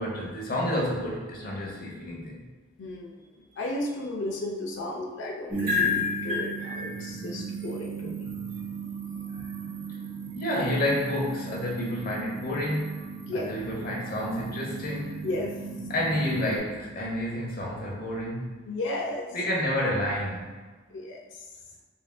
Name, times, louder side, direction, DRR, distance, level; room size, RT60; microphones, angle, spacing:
voice 1, 0.0-2.5 10.3-12.9 13.3-15.1 15.9-18.6 19.3-20.6, left 1 dB, 45° left, -3 dB, 0.9 m, -29 dB
voice 2, 2.8-3.2 3.6-8.3 13.2-13.4 15.2-15.5 18.7-19.3 20.9-21.5, left 1 dB, 60° left, 0 dB, 0.4 m, -34 dB
sound 1, 5.5-16.6, equal, 45° right, 1.1 m, -34 dB
6.9 x 2.4 x 2.3 m, 1.4 s
head